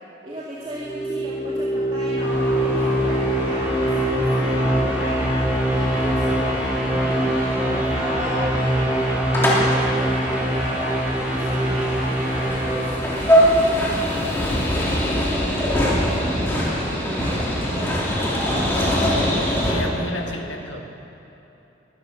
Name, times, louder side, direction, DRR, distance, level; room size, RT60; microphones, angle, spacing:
voice 1, 0.2-5.3 5.7-11.0 11.3-12.2 12.6-18.6, right 1 dB, 30° right, -8 dB, 2.1 m, -34 dB
sound 1, 0.7-13.8, right 1 dB, 5° right, 2.7 m, -23 dB
sound 2, 2.2-19.7, equal, 15° left, 2.7 m, -24 dB
voice 2, 19.6-20.8, left 1 dB, 85° left, 2 dB, 1.7 m, -31 dB
21.0 x 12.5 x 5.4 m, 2.9 s
head